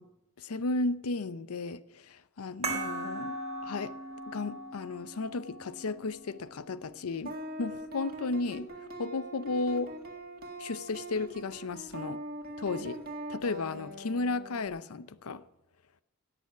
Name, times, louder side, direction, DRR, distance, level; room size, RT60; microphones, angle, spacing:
voice 1, 0.4-3.9 4.3-8.7 9.0-9.9 10.6-12.2 12.6-13.0 13.3-15.4, left 3 dB, 85° left, 0.6 m, -34 dB
sound 1, 2.6-7.7, right 2 dB, 30° right, 1.7 m, -40 dB
sound 2, 7.3-14.7, right 1 dB, 45° right, 1.8 m, -42 dB
18.0 x 6.9 x 6.0 m
head